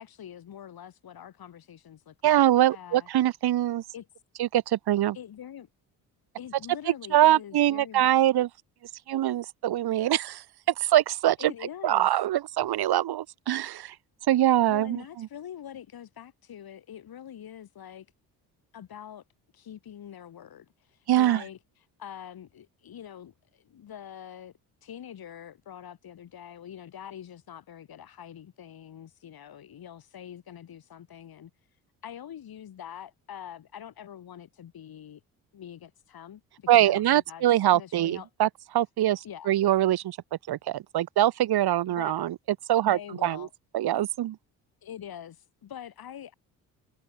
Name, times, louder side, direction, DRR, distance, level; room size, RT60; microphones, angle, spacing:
voice 1, 0.0-3.1 3.9-4.1 5.1-5.7 6.4-8.1 11.4-12.1 14.7-18.1 18.7-19.2 19.5-21.6 22.0-24.5 24.8-31.5 32.0-35.2 35.5-37.4 37.7-38.3 39.2-39.5 41.9-42.3 42.8-43.5 44.8-46.3, left 9 dB, 60° left, 7.6 m, -44 dB
voice 2, 2.2-3.8 4.4-5.2 6.9-8.5 9.1-11.5 11.8-14.0 14.3-15.3 21.1-21.4 36.7-40.2 40.5-42.4 42.7-43.5 43.7-44.4, right 13 dB, 65° right, 2.1 m, -24 dB
supercardioid pair, 65°, 40 cm